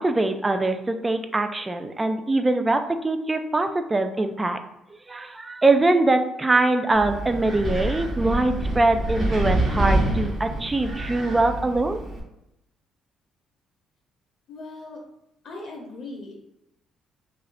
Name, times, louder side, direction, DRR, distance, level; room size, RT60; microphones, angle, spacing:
voice 1, 0.0-4.6 5.1-12.0, right 2 dB, 15° right, 7 dB, 0.3 m, -23 dB
Wind, 6.9-12.2, right 1 dB, 30° right, 0.9 m, -26 dB
voice 2, 14.5-15.0 15.4-16.3, left 2 dB, 55° left, -1 dB, 0.7 m, -38 dB
2.7 x 2.5 x 3.2 m, 0.84 s
cardioid pair, 120°, 0 cm